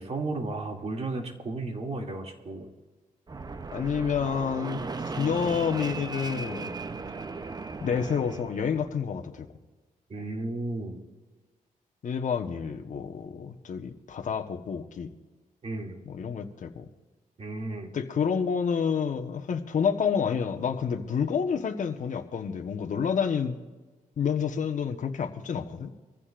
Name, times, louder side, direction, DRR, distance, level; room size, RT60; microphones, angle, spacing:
voice 1, 0.0-2.7 10.1-11.0 15.6-16.0 17.4-17.9, right 2 dB, 45° right, 1 dB, 2.5 m, -34 dB
Fixed-wing aircraft airplane, 3.3-8.9, right 4 dB, 25° right, 0.7 m, -37 dB
voice 2, 3.7-4.8 5.2-6.7 7.8-9.5 12.0-15.1 16.1-16.9 17.9-23.5 24.2-26.0, left 7 dB, 60° left, 5 dB, 1.2 m, -29 dB
24.5 x 15.0 x 2.5 m, 1.3 s
cardioid pair, 105°, 15 cm